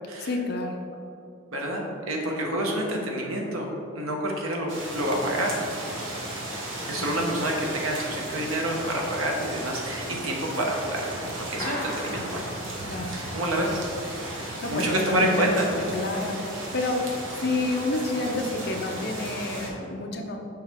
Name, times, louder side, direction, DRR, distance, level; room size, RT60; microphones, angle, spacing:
voice 1, 0.2-0.8 7.0-7.3 12.9-13.2 14.3-17.0 17.4-20.4, left 2 dB, 50° left, 2 dB, 0.7 m, -29 dB
voice 2, 1.5-3.7 4.0-4.7 4.9-5.5 6.9-12.4 13.1-13.8 14.7-15.7, right 1 dB, 80° right, 0 dB, 1.1 m, -28 dB
sound 1, 4.7-19.7, right 1 dB, 65° right, 1.2 m, -35 dB
Clapping, 11.6-13.3, left 1 dB, 15° left, 1.1 m, -37 dB
6.8 x 4.9 x 3.5 m, 2.7 s
head